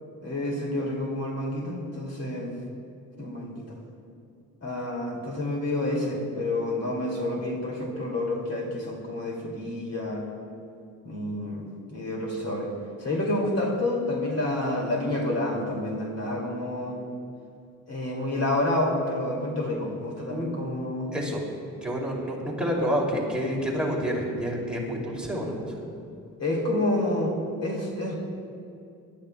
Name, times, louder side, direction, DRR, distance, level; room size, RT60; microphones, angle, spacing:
voice 1, 0.2-2.6 3.2-3.8 4.6-10.2 11.0-12.7 13.0-17.0 17.9-21.1 26.4-28.1, left 1 dB, 50° left, -1 dB, 2.4 m, -29 dB
voice 2, 21.1-21.4 21.8-25.8, equal, 5° right, -3 dB, 2.5 m, -28 dB
21.0 x 12.0 x 2.2 m, 2.5 s
cardioid pair, 100°, 33 cm